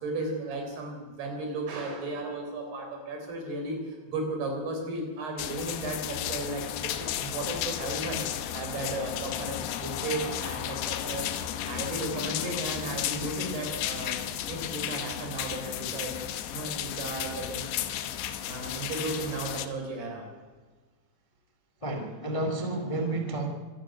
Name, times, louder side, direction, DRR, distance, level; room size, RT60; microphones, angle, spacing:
voice 1, 0.0-8.2 8.5-11.3 11.6-14.2 14.5-17.7 18.5-20.3, right 2 dB, 75° right, 3 dB, 6.2 m, -35 dB
sound 1, 5.4-19.7, left 11 dB, 90° left, 3.2 m, -34 dB
voice 2, 21.8-23.5, right 2 dB, 15° left, 5 dB, 1.3 m, -30 dB
25.0 x 12.0 x 9.1 m, 1.4 s
omnidirectional pair, 4.6 m